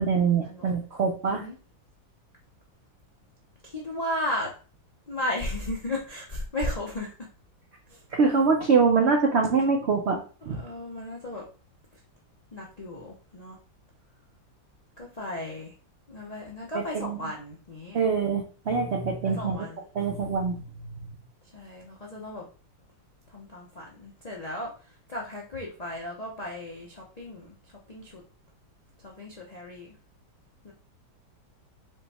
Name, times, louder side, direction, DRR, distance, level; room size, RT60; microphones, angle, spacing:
voice 1, 0.0-1.4 8.1-10.2 10.5-10.6 16.7-17.3 17.9-19.7 19.9-20.6, right 5 dB, 80° right, 2 dB, 0.6 m, -24 dB
voice 2, 3.6-4.5 5.1-7.1 7.9-8.0 10.4-11.5 12.5-13.6 15.0-15.7 16.1-18.0 19.2-19.8 21.5-22.5 23.3-27.6 27.9-28.2 29.0-29.9 30.6-30.7, left 1 dB, 60° left, -3 dB, 0.4 m, -35 dB
5.0 x 2.2 x 4.1 m, 0.37 s
omnidirectional pair, 2.0 m